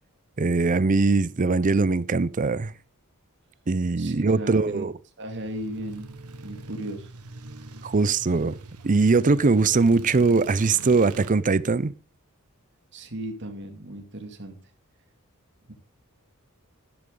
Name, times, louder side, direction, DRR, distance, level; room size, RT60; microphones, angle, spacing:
voice 1, 0.4-2.7 3.7-4.9 7.8-8.6 8.8-11.9, right 3 dB, 35° right, 0.5 m, -21 dB
voice 2, 4.0-4.8 5.2-7.1 12.9-14.6 15.7-15.8, right 1 dB, 55° right, 2.4 m, -36 dB
sound 1, 5.3-11.3, right 2 dB, 90° right, 1.4 m, -43 dB
12.0 x 12.0 x 3.8 m
head